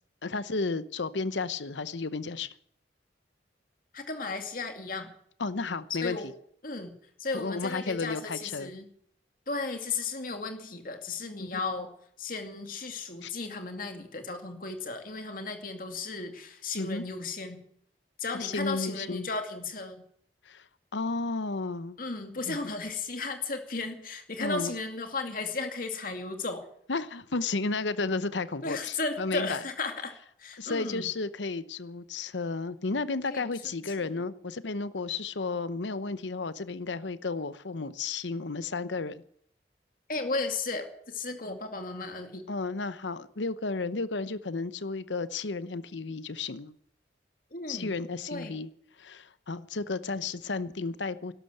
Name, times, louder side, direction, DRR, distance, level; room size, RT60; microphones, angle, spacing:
voice 1, 0.2-2.5 5.4-6.2 7.3-8.7 11.4-11.6 13.2-13.3 16.8-17.0 18.4-19.3 20.5-20.6 20.9-22.0 22.5-22.6 24.4-24.7 26.9-29.6 30.6-39.2 42.5-46.7 47.7-48.7 49.0-51.3, left 3 dB, 90° left, 0.9 m, -33 dB
voice 2, 3.9-5.1 6.0-6.3 6.6-6.9 7.2-8.9 9.5-11.9 12.2-17.6 18.2-20.0 22.0-26.7 28.6-30.1 30.4-31.0 33.3-33.4 34.0-34.1 40.1-42.4 47.5-47.9 48.3-48.5, left 3 dB, 50° left, 2.4 m, -35 dB
12.0 x 12.0 x 8.2 m
head